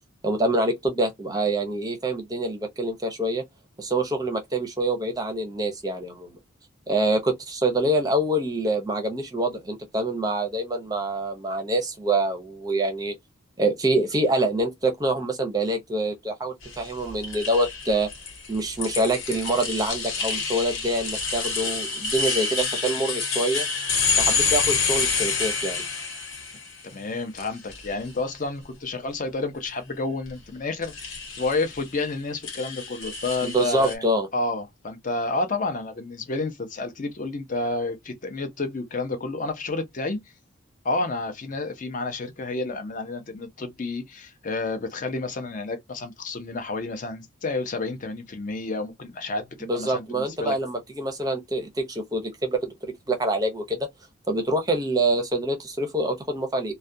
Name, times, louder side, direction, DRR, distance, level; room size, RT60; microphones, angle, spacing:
voice 1, 0.2-3.4 3.8-6.4 6.9-13.2 13.6-18.1 18.5-23.7 24.2-25.8 33.4-34.3 49.6-53.9 54.3-56.7, right 1 dB, 20° right, 0.5 m, -26 dB
sound 1, 16.6-26.9 27.4-28.1 30.8-31.9 32.4-33.9, left 4 dB, 85° left, 1.2 m, -28 dB
voice 2, 26.8-34.0 34.3-40.2 40.8-50.6, left 3 dB, 40° left, 0.5 m, -30 dB
2.3 x 2.1 x 2.5 m
head